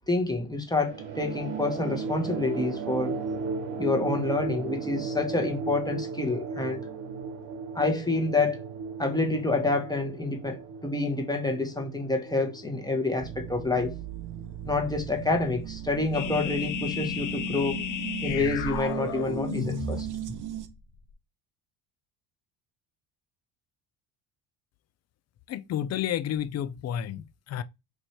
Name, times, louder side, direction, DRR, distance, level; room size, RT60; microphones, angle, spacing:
voice 1, 0.1-3.2 3.8-6.8 7.7-8.6 9.0-13.9 14.6-17.8 18.2-20.1, left 3 dB, 10° left, 1.0 m, -28 dB
sound 1, 0.8-15.7, right 4 dB, 65° right, 0.9 m, -36 dB
sound 2, 13.2-20.7, right 12 dB, 40° right, 0.7 m, -38 dB
sound 3, 16.1-20.7, left 7 dB, 65° left, 1.0 m, -33 dB
voice 2, 25.5-27.6, left 10 dB, 35° left, 0.4 m, -31 dB
3.1 x 2.6 x 4.3 m
supercardioid pair, 85°, 47 cm